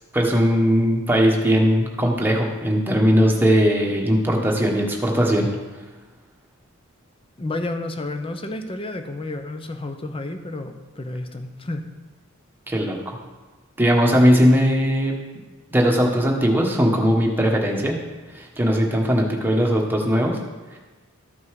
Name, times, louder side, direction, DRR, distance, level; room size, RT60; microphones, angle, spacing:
voice 1, 0.1-5.5 12.7-13.2 13.8-15.1 15.7-17.9 18.3-20.4, equal, 10° right, 0 dB, 1.3 m, -19 dB
voice 2, 7.4-11.8, left 2 dB, 25° left, 7 dB, 0.7 m, -31 dB
13.0 x 5.4 x 4.8 m, 1.3 s
head